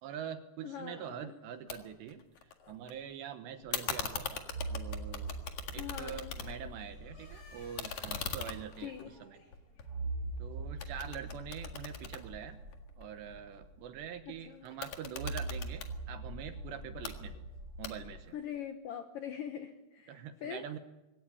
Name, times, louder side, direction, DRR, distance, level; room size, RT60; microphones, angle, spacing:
voice 1, 0.0-2.2 2.7-4.4 4.7-5.4 5.7-9.4 10.4-12.6 13.0-17.5 17.8-18.4 20.1-20.8, right 8 dB, 70° right, 9 dB, 3.0 m, -44 dB
voice 2, 0.6-1.3 5.8-6.3 8.8-9.1 14.5-14.7 18.3-20.2 20.4-20.6, left 9 dB, 85° left, 8 dB, 1.9 m, -42 dB
sound 1, 1.7-1.8 2.1-2.9 3.7-6.8 7.1-10.4 10.8-13.0 14.7-15.9 16.8-17.1 17.8-18.3, left 7 dB, 55° left, 2.2 m, -41 dB
sound 2, 3.6-3.7 4.5-9.0 9.8-14.5 15.2-18.2, right 2 dB, 25° right, 7.9 m, -43 dB
sound 3, 6.7-12.2, left 2 dB, 35° left, 8.8 m, -62 dB
22.0 x 17.5 x 10.0 m, 1.0 s
omnidirectional pair, 5.8 m